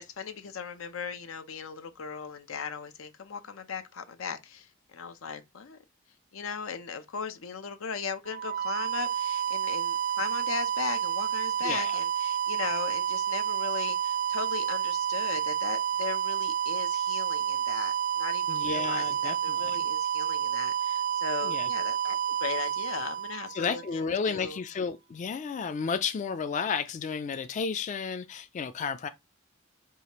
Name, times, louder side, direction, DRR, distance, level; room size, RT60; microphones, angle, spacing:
voice 1, 0.0-5.8 6.3-24.0 24.3-24.6, left 6 dB, 85° left, 0.6 m, -38 dB
sound 1, 8.3-24.1, right 9 dB, 40° right, 0.3 m, -30 dB
voice 2, 11.6-12.0 18.5-19.8 21.4-21.7 23.5-29.1, left 5 dB, 35° left, 0.3 m, -32 dB
4.8 x 2.7 x 2.9 m
head